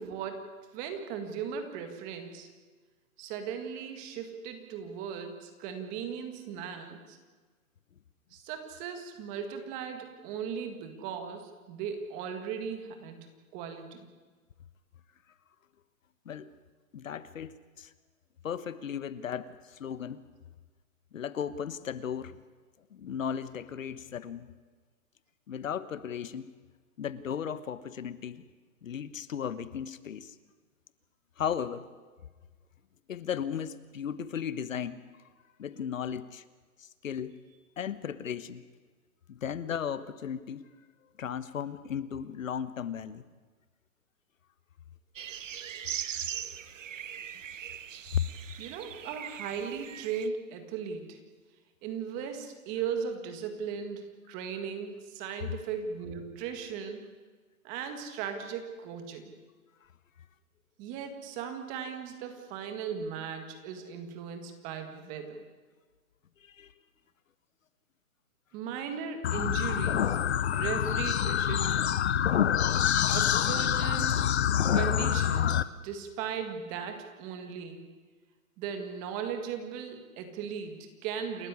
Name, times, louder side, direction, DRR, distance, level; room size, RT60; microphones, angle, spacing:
voice 1, 0.0-2.5 3.2-7.2 8.3-13.3 13.5-14.1 48.6-51.2 51.8-57.0 57.6-59.4 60.8-65.4 68.5-70.2 70.5-72.0 73.0-74.3 74.7-77.9 78.6-81.5, right 7 dB, 15° right, 6 dB, 1.8 m, -37 dB
voice 2, 16.9-17.9 18.4-20.2 21.1-22.4 22.9-24.5 25.5-26.5 27.0-28.4 28.8-30.3 31.4-31.9 33.1-35.0 35.6-36.4 36.8-37.3 37.8-38.6 39.3-40.6 41.2-43.2 48.1-48.3 66.4-66.7, left 8 dB, 65° left, 15 dB, 1.3 m, -35 dB
sound 1, 45.2-50.3, right 9 dB, 60° right, 1.2 m, -40 dB
sound 2, 69.2-75.6, left 9 dB, 50° left, 0.9 m, -26 dB
28.5 x 13.5 x 9.6 m, 1.4 s
hypercardioid pair, 165°, 43 cm